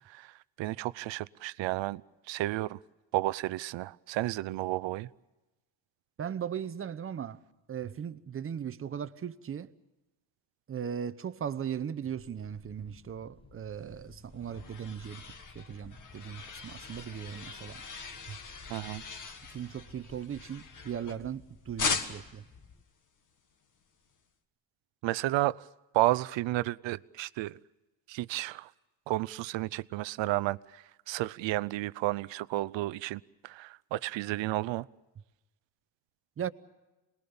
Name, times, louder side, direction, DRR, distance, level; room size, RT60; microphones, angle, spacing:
voice 1, 0.0-2.0 2.3-2.8 3.1-5.1 18.7-19.0 25.0-25.6 25.9-27.6 28.1-28.7 29.1-34.9, right 17 dB, 75° right, 0.7 m, -32 dB
voice 2, 6.2-7.4 7.7-9.7 10.7-15.2 15.5-17.8 18.3-18.4 19.5-22.4 36.4-36.5, right 8 dB, 30° right, 0.8 m, -38 dB
sound 1, 12.1-22.8, left 3 dB, 10° left, 1.4 m, -55 dB
sound 2, 14.0-21.4 21.8-22.4, left 5 dB, 45° left, 1.8 m, -39 dB
27.0 x 20.5 x 7.0 m
cardioid pair, 150°, 45 cm